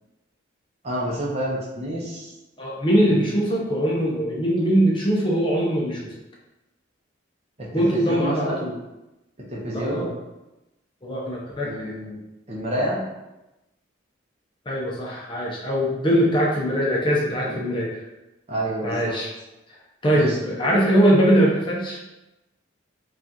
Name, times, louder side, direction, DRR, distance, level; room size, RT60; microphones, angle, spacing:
voice 1, 0.8-2.3 3.0-3.2 7.6-8.7 9.5-10.1 11.6-12.2 12.5-13.0 17.5-17.6 18.5-19.1 20.1-20.4, right 1 dB, 30° right, -4 dB, 0.8 m, -29 dB
voice 2, 2.6-6.1 7.7-8.8 9.7-10.1 11.0-12.0 14.7-18.0 18.8-19.3 20.0-22.0, equal, 25° left, -3 dB, 0.5 m, -22 dB
4.8 x 2.4 x 2.8 m, 0.98 s
head